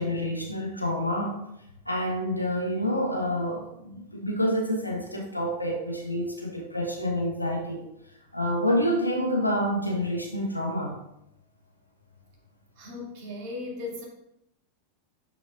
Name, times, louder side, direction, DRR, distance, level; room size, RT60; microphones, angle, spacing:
voice 1, 0.0-1.4 1.9-7.9 8.3-11.0, equal, 90° left, 0 dB, 1.0 m, -28 dB
voice 2, 12.8-14.1, left 3 dB, 45° right, -1 dB, 2.3 m, -37 dB
11.0 x 5.2 x 2.4 m, 0.79 s
figure-of-eight pair, 90°, 0 cm